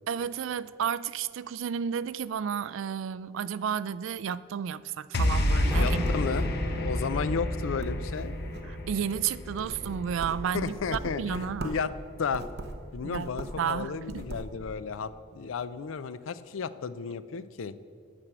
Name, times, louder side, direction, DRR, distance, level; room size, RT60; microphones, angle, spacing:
voice 1, 0.1-6.0 8.7-11.8 13.0-13.3 13.6-14.3, right 7 dB, 70° right, 17 dB, 0.3 m, -32 dB
sound 1, 5.1-11.6, left 1 dB, 50° left, 0.9 m, -30 dB
sound 2, 5.5-6.8 7.2-7.5 7.8-8.8 9.3-11.9 12.3-13.7 14.0-14.5, right 1 dB, 55° right, 0.8 m, -40 dB
Piano, 5.7-15.1 15.3-15.6, left 1 dB, 10° left, 0.9 m, -40 dB
voice 2, 5.8-6.5 6.8-8.3 10.5-11.9 12.2-12.4 12.9-17.7, left 5 dB, 75° left, 14 dB, 0.5 m, -33 dB
8.8 x 6.1 x 7.9 m, 2.3 s
head